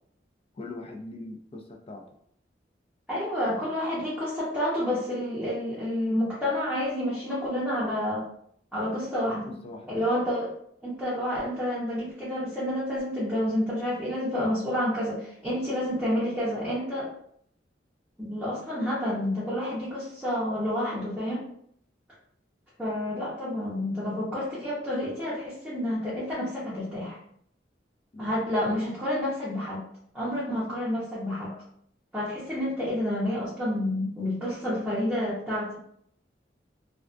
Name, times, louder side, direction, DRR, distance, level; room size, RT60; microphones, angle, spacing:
voice 1, 0.5-2.1 9.2-10.0 28.1-28.4 31.5-31.6, left 2 dB, 35° left, 2 dB, 0.3 m, -42 dB
voice 2, 3.1-8.3 8.7-9.5 9.9-10.5 10.8-17.1 18.2-21.4 22.8-27.2 28.2-29.8 30.1-31.5 32.1-35.8, left 1 dB, 5° right, -10 dB, 0.6 m, -29 dB
2.2 x 2.2 x 2.4 m, 0.68 s
head